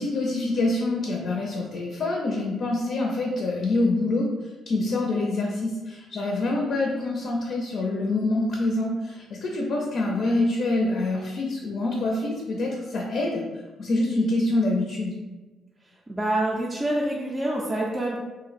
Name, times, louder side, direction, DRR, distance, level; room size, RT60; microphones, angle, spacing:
voice 1, 0.0-4.3 4.7-13.4 13.8-15.2, left 2 dB, 60° left, -1 dB, 0.5 m, -26 dB
voice 2, 16.1-18.2, right 1 dB, 15° right, -3 dB, 0.4 m, -26 dB
2.6 x 2.1 x 4.0 m, 1.2 s
cardioid pair, 90°, 0 cm